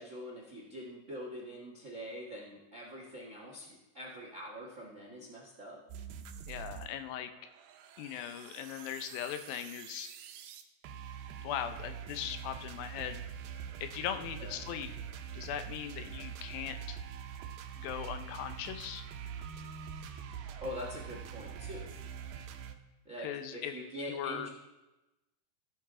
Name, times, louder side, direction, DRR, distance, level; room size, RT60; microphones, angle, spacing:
voice 1, 0.0-5.8 14.4-14.6 20.6-21.9 23.0-24.5, equal, 60° right, -2 dB, 0.7 m, -44 dB
sound 1, 5.9-6.9 7.2-22.7, right 8 dB, 85° right, 2.6 m, -45 dB
voice 2, 6.5-7.3 8.0-10.1 11.4-13.2 13.8-14.9 15.3-17.0 17.8-19.0 23.2-23.7 24.1-24.5, left 9 dB, 85° left, 9 dB, 2.5 m, -39 dB
14.5 x 8.7 x 3.7 m, 1.0 s
omnidirectional pair, 4.1 m